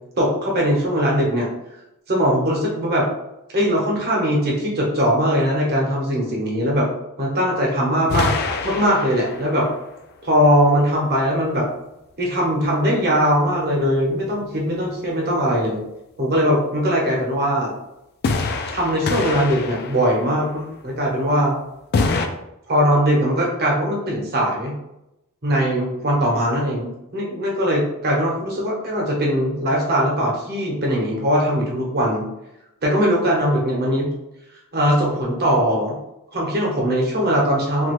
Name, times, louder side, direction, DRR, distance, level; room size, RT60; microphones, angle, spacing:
voice 1, 0.2-1.5 2.1-3.1 3.5-6.9 7.2-8.3 8.6-9.7 10.2-11.7 12.2-15.8 16.2-17.7 18.7-21.5 22.7-24.7 25.4-32.3 32.8-34.1 34.7-36.0 36.3-37.9, equal, 45° right, -2 dB, 0.9 m, -20 dB
sound 1, 8.1-9.8 18.2-20.5 21.9-22.3, left 4 dB, 45° left, 0.3 m, -25 dB
2.8 x 2.5 x 3.0 m, 0.87 s
head